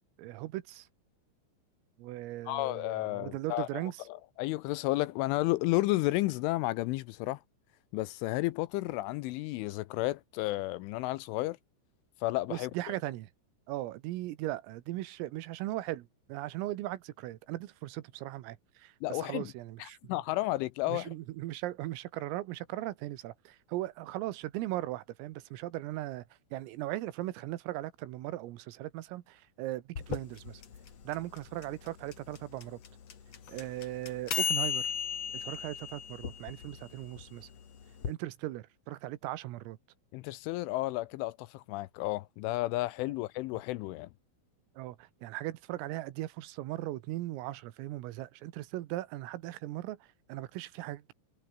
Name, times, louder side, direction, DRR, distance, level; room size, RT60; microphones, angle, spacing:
voice 1, 0.2-0.9 2.0-4.1 12.5-13.3 13.7-20.2 20.9-26.3 26.5-30.6 31.1-32.8 33.5-34.9 35.3-37.5 38.1-39.8 44.8-51.1, right 16 dB, 90° right, 3.9 m, -38 dB
voice 2, 2.5-3.7 4.4-7.4 7.9-11.6 12.2-12.7 19.0-19.5 19.8-21.1 40.1-44.1, left 19 dB, 85° left, 3.0 m, -32 dB
sound 1, 30.0-38.1, left 7 dB, 40° left, 2.5 m, -36 dB
omnidirectional pair, 6.0 m